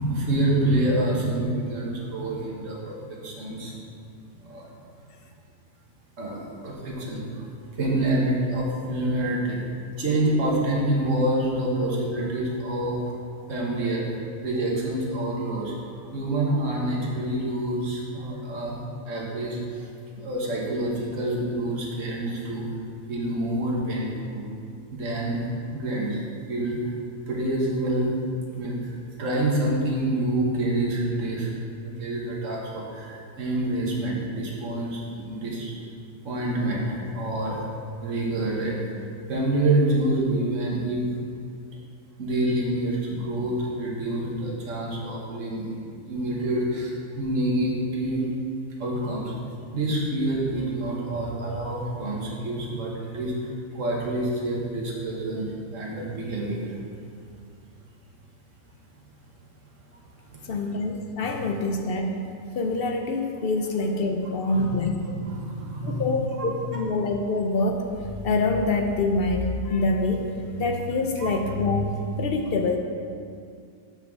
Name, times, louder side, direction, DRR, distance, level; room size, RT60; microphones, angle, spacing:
voice 1, 0.0-3.8 4.4-4.7 6.2-7.5 7.7-9.6 10.0-13.1 13.5-14.0 14.4-19.9 20.1-22.6 23.1-24.5 24.9-25.4 25.7-26.2 26.5-26.9 27.3-28.1 28.6-28.9 29.2-31.5 31.8-35.7 36.2-37.6 38.0-41.1 42.2-45.8 46.0-48.3 48.8-49.3 49.7-56.8 60.2-60.5 64.5-64.6 65.2-66.2 71.2-71.3, right 1 dB, 55° right, -3 dB, 1.6 m, -27 dB
voice 2, 60.5-62.2 62.5-65.2 66.0-72.8, left 2 dB, 60° left, 3 dB, 0.6 m, -25 dB
5.7 x 5.5 x 6.2 m, 2.3 s
omnidirectional pair, 1.6 m